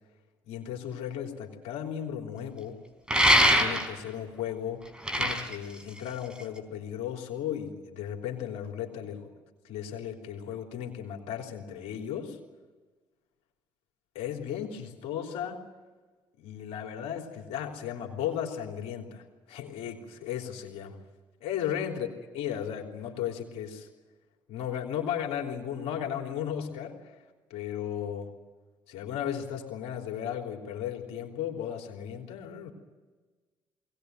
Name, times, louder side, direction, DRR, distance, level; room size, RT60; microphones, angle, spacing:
voice 1, 0.4-2.8 3.6-4.8 5.2-9.3 9.6-12.4 14.2-15.7 16.4-21.0 21.4-22.1 22.3-23.9 24.5-27.0 27.5-28.3 28.9-32.7, left 9 dB, 70° left, 2 dB, 3.5 m, -35 dB
sound 1, 3.1-4.1 4.9-6.6, equal, 10° right, 4.1 m, -23 dB
22.0 x 18.0 x 9.4 m, 1.3 s
supercardioid pair, 65°, 11 cm